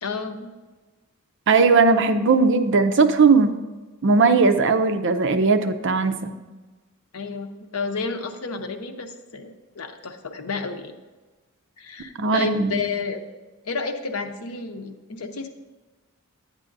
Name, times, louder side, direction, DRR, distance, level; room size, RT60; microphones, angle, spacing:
voice 1, 0.0-0.5 7.1-10.9 11.8-13.2 13.7-15.5, left 4 dB, 85° left, 6 dB, 0.7 m, -31 dB
voice 2, 1.5-3.6 4.0-6.3 12.2-12.8, right 4 dB, 55° right, 9 dB, 0.5 m, -18 dB
9.7 x 8.9 x 2.6 m, 1.3 s
head